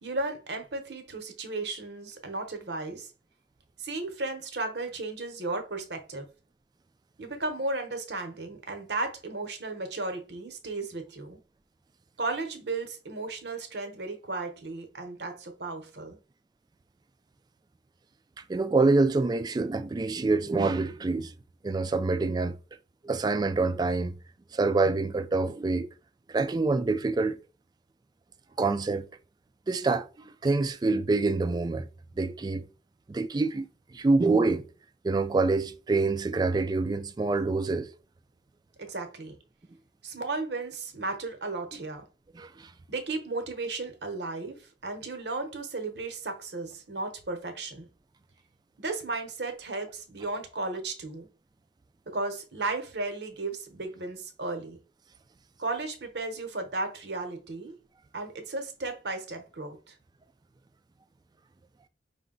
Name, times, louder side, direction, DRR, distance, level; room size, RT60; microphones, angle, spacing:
voice 1, 0.0-3.1 3.8-6.3 7.2-11.4 12.2-16.2 38.8-39.4 40.0-42.1 42.9-47.8 48.8-51.3 52.1-54.8 55.6-57.8 58.1-59.9, right 3 dB, 70° right, 1.0 m, -34 dB
voice 2, 18.5-21.3 21.6-22.6 23.0-24.1 24.5-25.9 26.3-27.4 28.6-29.0 29.7-31.9 32.2-32.6 33.1-33.7 33.9-34.6 35.0-37.9 42.3-42.7, right 3 dB, 25° right, 0.3 m, -26 dB
5.0 x 2.2 x 3.8 m
head